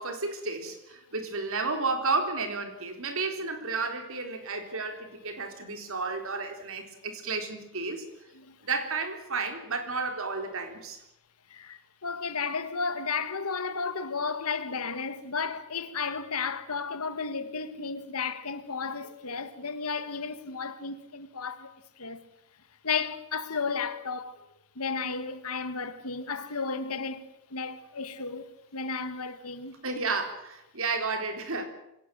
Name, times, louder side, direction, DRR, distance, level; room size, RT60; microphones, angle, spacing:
voice 1, 0.0-8.0 8.6-11.0 29.8-31.7, right 4 dB, 65° right, 3.9 m, -32 dB
voice 2, 11.5-22.2 22.8-24.4 24.8-29.8, left 5 dB, 85° left, 1.9 m, -33 dB
25.0 x 17.0 x 7.7 m
head